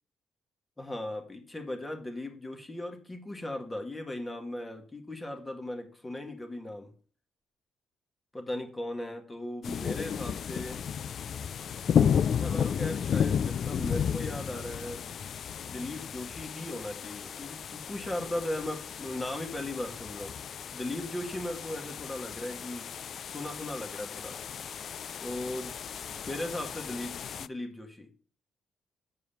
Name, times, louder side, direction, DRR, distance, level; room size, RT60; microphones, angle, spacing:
voice 1, 0.8-6.9 8.3-10.8 12.1-20.4 20.7-22.9 23.3-24.4 25.2-25.8 26.3-28.1, left 1 dB, 20° left, 1.8 m, -38 dB
sound 1, 9.6-27.5, left 8 dB, 60° left, 0.3 m, -33 dB
7.4 x 4.8 x 6.9 m
cardioid pair, 90°, 0 cm